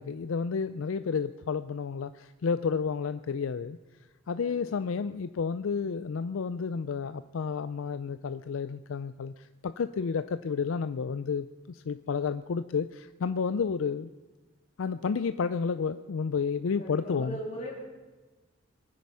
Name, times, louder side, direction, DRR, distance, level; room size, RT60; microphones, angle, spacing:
voice 1, 0.0-3.8 4.3-14.1 14.8-17.4, left 5 dB, 85° left, 12 dB, 0.4 m, -31 dB
voice 2, 4.4-4.7 16.8-17.7, equal, 35° left, -4 dB, 3.1 m, -38 dB
23.5 x 9.5 x 5.6 m, 1.2 s
head